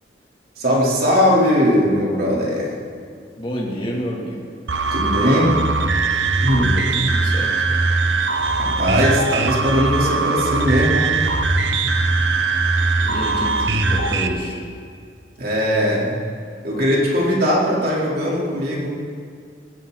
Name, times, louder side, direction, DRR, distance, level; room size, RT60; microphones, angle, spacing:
voice 1, 0.6-2.7 4.9-5.5 6.4-6.7 8.6-11.1 15.4-16.2 16.6-18.9, equal, 55° right, -4 dB, 3.9 m, -19 dB
voice 2, 3.4-4.5 6.5-7.5 13.0-14.6, equal, 30° left, -3 dB, 3.0 m, -28 dB
sound 1, 4.7-14.3, right 3 dB, 85° right, 1.1 m, -20 dB
19.0 x 17.0 x 4.2 m, 2.1 s
head